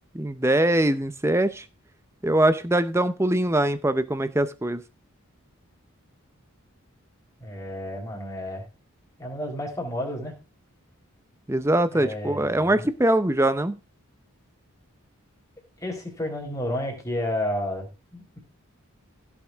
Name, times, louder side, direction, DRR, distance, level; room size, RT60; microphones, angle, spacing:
voice 1, 0.1-1.7 2.2-4.8 11.5-13.8, right 1 dB, 10° right, 12 dB, 0.6 m, -22 dB
voice 2, 7.4-8.7 9.2-10.3 11.9-12.7 15.8-18.4, left 1 dB, 15° left, 0 dB, 4.5 m, -31 dB
16.0 x 7.2 x 3.5 m, 0.30 s
head